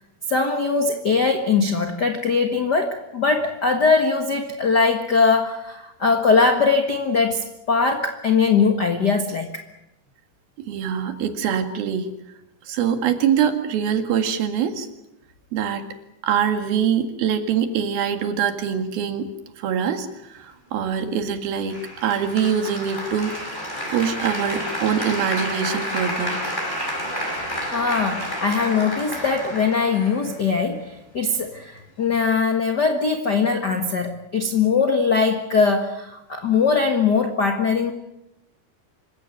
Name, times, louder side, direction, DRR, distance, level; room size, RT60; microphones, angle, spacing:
voice 1, 0.3-9.6 27.7-37.9, left 4 dB, 70° left, 5 dB, 0.9 m, -21 dB
voice 2, 10.6-12.1 12.7-14.9 15.5-15.8 16.2-19.3 19.6-20.1 20.3-23.3 23.9-26.4, right 8 dB, 65° right, 7 dB, 3.7 m, -23 dB
Applause, 21.7-30.7, equal, 10° left, 5.5 m, -30 dB
27.0 x 15.5 x 9.2 m, 0.90 s
omnidirectional pair, 4.7 m